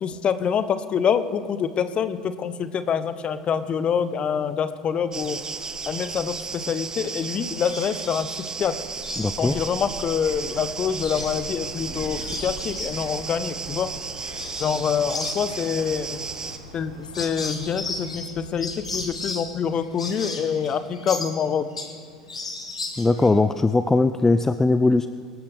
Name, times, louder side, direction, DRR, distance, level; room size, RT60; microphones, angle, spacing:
voice 1, 0.0-5.4 5.9-8.7 9.4-13.9 14.6-16.2 16.7-21.6, left 7 dB, 35° left, 12 dB, 1.0 m, -26 dB
sound 1, 5.1-16.6, right 4 dB, 20° right, 1.1 m, -34 dB
sound 2, 7.6-8.2 8.6-10.4 10.7-14.8 15.1-22.0 22.3-23.3, left 3 dB, 80° left, 1.6 m, -35 dB
voice 2, 9.2-9.6 23.0-25.1, left 3 dB, 10° left, 11 dB, 0.5 m, -20 dB
sound 3, 10.4-18.1, right 1 dB, 85° right, 2.1 m, -45 dB
24.5 x 12.0 x 3.7 m, 2.3 s
figure-of-eight pair, 75°, 3 cm